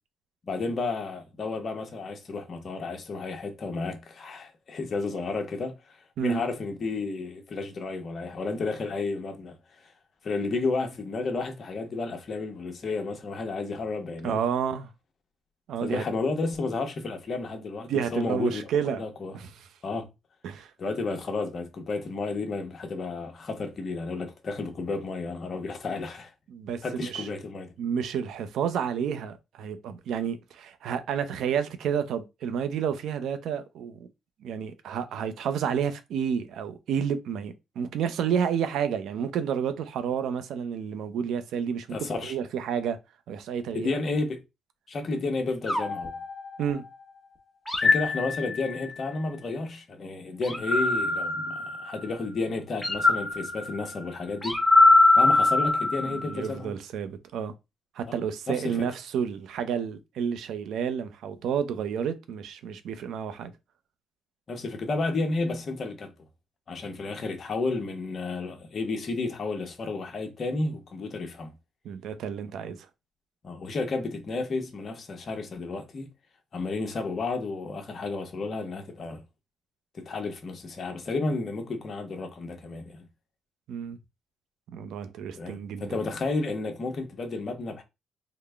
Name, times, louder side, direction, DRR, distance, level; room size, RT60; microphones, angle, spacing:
voice 1, 0.5-9.9 10.2-14.4 15.8-18.6 19.0-19.4 19.8-20.1 20.8-26.3 26.8-27.7 41.9-42.3 43.7-44.4 44.9-46.2 47.7-54.6 55.2-56.7 58.1-58.2 58.5-58.9 64.5-66.1 66.7-71.5 73.4-76.1 76.5-79.2 79.9-83.1 85.4-87.8, left 3 dB, 45° left, 1.0 m, -32 dB
voice 2, 14.2-14.9 15.7-16.0 17.9-19.0 19.3-19.5 20.4-20.7 26.5-27.3 27.8-34.0 34.4-41.9 42.2-43.0 43.3-43.9 46.6-46.8 56.0-57.5 58.0-63.5 71.8-72.8 83.7-84.0 84.7-86.0, right 7 dB, 80° right, 0.6 m, -30 dB
sound 1, 45.7-47.0 47.7-48.9 50.4-52.1 52.8-56.3, left 2 dB, 10° left, 1.0 m, -23 dB
3.9 x 2.1 x 3.4 m
cardioid pair, 90°, 0 cm